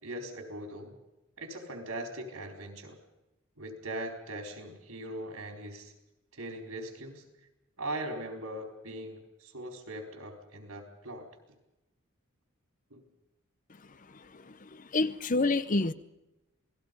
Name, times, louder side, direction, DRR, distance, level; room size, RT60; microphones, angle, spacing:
voice 1, 0.0-0.9 1.4-3.0 3.6-5.9 6.3-7.2 7.8-11.3 12.9-13.0, right 1 dB, 85° right, 3 dB, 4.3 m, -40 dB
voice 2, 14.3-15.9, left 3 dB, 35° left, 15 dB, 0.7 m, -28 dB
27.5 x 19.5 x 5.4 m, 0.95 s
head